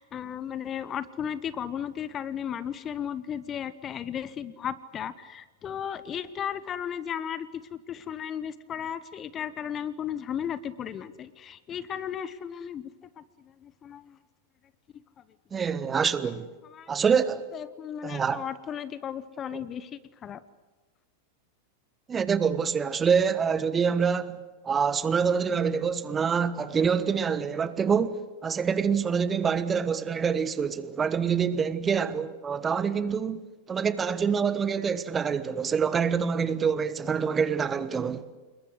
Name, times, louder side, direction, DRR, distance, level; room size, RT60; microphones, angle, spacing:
voice 1, 0.0-12.9 13.2-14.2 16.6-16.9 17.5-20.4, left 9 dB, 25° left, 1.0 m, -35 dB
voice 2, 15.5-16.5 16.9-17.4 18.0-18.4 19.5-19.6 22.1-24.4 24.6-33.4 33.7-38.2, right 6 dB, 20° right, 1.3 m, -26 dB
28.0 x 22.0 x 8.0 m
figure-of-eight pair, 90°, 0 cm